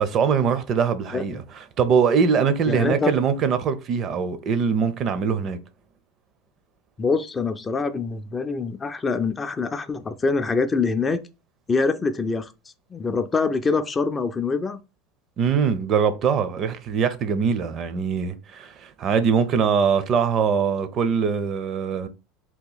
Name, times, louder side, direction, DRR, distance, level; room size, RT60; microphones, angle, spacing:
voice 1, 0.0-1.4 1.8-5.6 15.4-22.1, right 6 dB, 40° right, 0.5 m, -22 dB
voice 2, 2.7-3.1 7.0-11.2 11.7-12.5 12.9-14.8, left 4 dB, 20° left, 0.3 m, -24 dB
2.9 x 2.3 x 3.9 m
supercardioid pair, 125°, 0 cm